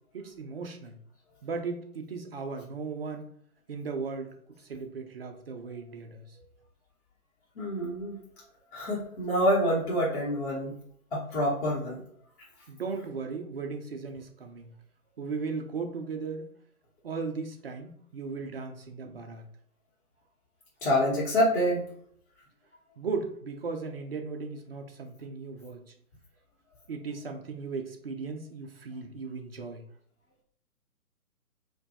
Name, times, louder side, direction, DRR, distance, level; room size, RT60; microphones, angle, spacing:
voice 1, 0.1-1.0 1.4-3.3 3.7-6.4 12.7-14.7 15.2-16.5 17.0-19.4 23.0-25.9 26.9-29.8, right 4 dB, 40° right, 4 dB, 0.5 m, -37 dB
voice 2, 7.6-8.2 8.7-10.7 11.1-12.0 20.8-21.8, equal, 35° left, -8 dB, 1.0 m, -26 dB
4.3 x 2.3 x 2.8 m, 0.64 s
figure-of-eight pair, 145°, 45 cm